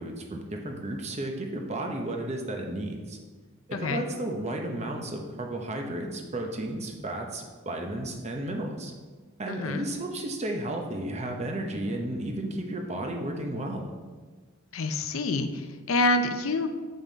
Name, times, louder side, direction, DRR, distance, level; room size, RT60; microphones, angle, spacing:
voice 1, 0.0-3.2 3.7-8.9 9.4-13.9, right 1 dB, 30° right, 2 dB, 0.9 m, -33 dB
voice 2, 3.7-4.0 9.5-9.9 14.7-16.7, left 2 dB, 75° left, 8 dB, 0.6 m, -27 dB
7.4 x 5.5 x 4.0 m, 1.4 s
head